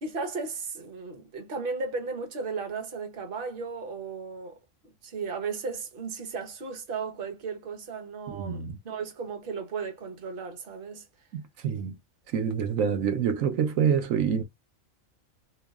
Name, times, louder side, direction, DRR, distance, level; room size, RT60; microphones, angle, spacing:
voice 1, 0.0-11.1, right 4 dB, 45° right, 1.1 m, -35 dB
voice 2, 8.3-8.8 11.3-11.9 12.3-14.4, right 7 dB, 80° right, 1.2 m, -27 dB
3.2 x 3.0 x 3.5 m
omnidirectional pair, 1.4 m